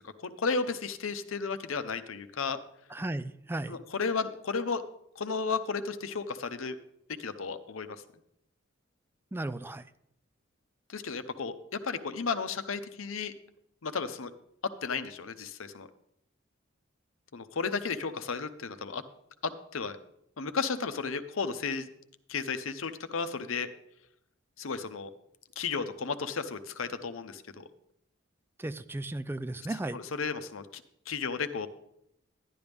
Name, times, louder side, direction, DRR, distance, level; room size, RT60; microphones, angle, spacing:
voice 1, 0.0-2.6 3.7-4.8 5.2-6.8 7.2-8.0 10.9-13.3 13.8-14.3 14.8-15.9 17.3-19.0 19.4-20.0 20.4-21.9 22.3-23.7 24.6-25.1 25.6-27.7 29.9-30.8 31.1-31.7, left 5 dB, 85° left, 10 dB, 0.7 m, -33 dB
voice 2, 2.9-3.8 9.3-9.8 28.6-30.0, right 1 dB, 10° right, 13 dB, 0.3 m, -35 dB
12.0 x 11.0 x 3.5 m, 0.76 s
head